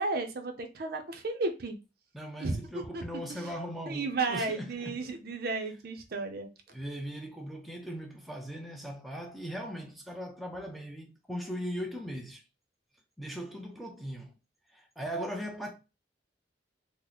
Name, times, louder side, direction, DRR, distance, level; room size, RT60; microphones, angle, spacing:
voice 1, 0.0-1.8 2.4-3.0 3.3-3.5 3.9-6.5, right 3 dB, 55° right, 0.5 m, -33 dB
voice 2, 2.1-5.1 6.7-12.4 13.2-14.4 14.7-15.7, equal, ahead, 0.5 m, -39 dB
2.9 x 2.1 x 3.8 m
head